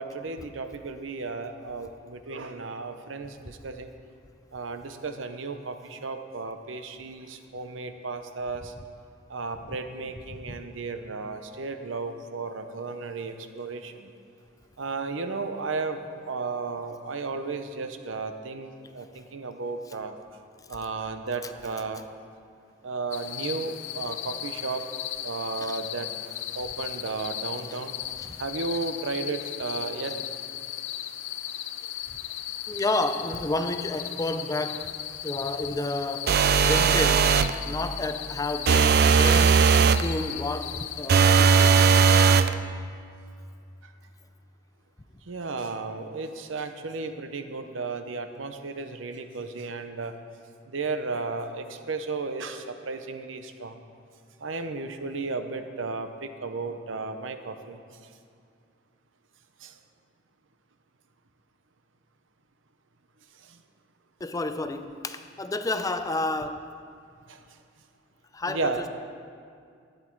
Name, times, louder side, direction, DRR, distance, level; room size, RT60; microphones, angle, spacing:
voice 1, 0.0-3.9 4.5-8.7 9.3-14.1 14.8-20.2 20.7-22.0 22.8-24.9 25.2-26.1 26.5-27.9 28.4-30.2 37.6-37.7 42.0-42.1 45.3-50.1 50.7-53.8 54.4-57.8 59.6-59.7 63.4-63.6 67.3-67.4 68.5-68.9, right 4 dB, 90° right, 8 dB, 0.8 m, -34 dB
sound 1, 23.1-42.3, left 12 dB, 75° left, 0.5 m, -36 dB
voice 2, 32.7-34.9 35.2-37.3 37.7-41.9 64.2-66.7 68.3-68.9, left 2 dB, 20° left, 9 dB, 0.5 m, -30 dB
sound 2, 36.3-37.6 38.7-40.1 41.1-42.5, right 6 dB, 55° right, 0.4 m, -18 dB
12.5 x 9.7 x 4.6 m, 2.3 s
head